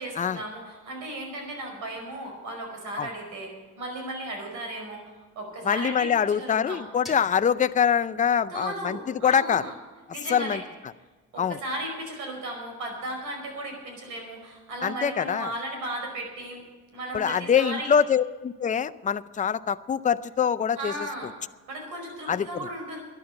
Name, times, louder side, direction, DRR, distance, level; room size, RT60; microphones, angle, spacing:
voice 1, 0.0-5.0 5.3-6.1 6.4-6.8 8.5-9.7 10.1-10.6 11.3-16.6 16.9-17.9 20.7-21.3 21.7-23.0, right 1 dB, 85° right, 2 dB, 5.1 m, -35 dB
voice 2, 5.6-9.7 10.3-10.6 11.4-11.6 14.8-15.5 17.1-20.9 22.3-22.7, left 7 dB, 25° left, 13 dB, 0.5 m, -24 dB
sound 1, 7.0-9.9, left 1 dB, ahead, 3.0 m, -50 dB
12.0 x 10.5 x 7.8 m, 1.3 s
cardioid pair, 90°, 30 cm